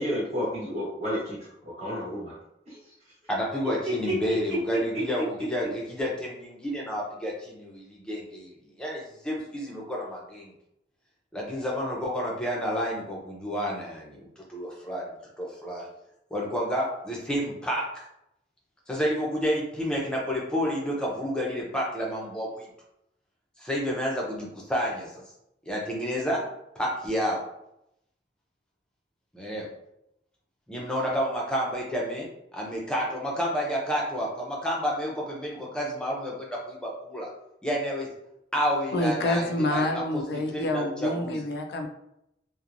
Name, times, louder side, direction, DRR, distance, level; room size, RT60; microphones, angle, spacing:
voice 1, 0.0-2.3 2.7-2.8 4.0-4.1 4.5-4.6 4.9-5.0, equal, 35° right, -8 dB, 1.0 m, -31 dB
voice 2, 3.3-8.5 8.8-10.5 11.3-15.0 15.4-15.8 16.3-18.0 18.9-22.7 23.6-25.1 25.7-26.4 26.8-27.4 29.3-29.7 30.7-32.3 32.5-37.3 37.6-38.1 38.5-40.2 40.5-41.4, equal, 5° left, -3 dB, 0.5 m, -30 dB
voice 3, 38.9-41.9, left 1 dB, 65° left, 3 dB, 0.3 m, -27 dB
2.9 x 2.1 x 2.5 m, 0.80 s
head